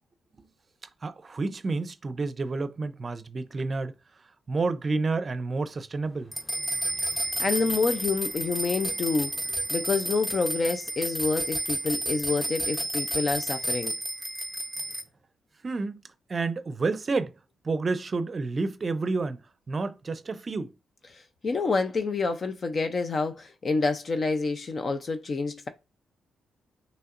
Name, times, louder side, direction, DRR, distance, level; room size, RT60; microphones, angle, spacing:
voice 1, 1.0-3.9 4.5-6.3 15.6-16.0 16.3-17.3 17.6-19.4 19.7-20.7, right 3 dB, 40° right, 0.5 m, -29 dB
sound 1, 6.3-15.0, right 1 dB, 15° left, 0.9 m, -31 dB
voice 2, 7.4-9.3 9.7-13.9 21.1-25.7, left 4 dB, 45° left, 0.5 m, -28 dB
5.6 x 3.1 x 2.5 m
cardioid pair, 75°, 0 cm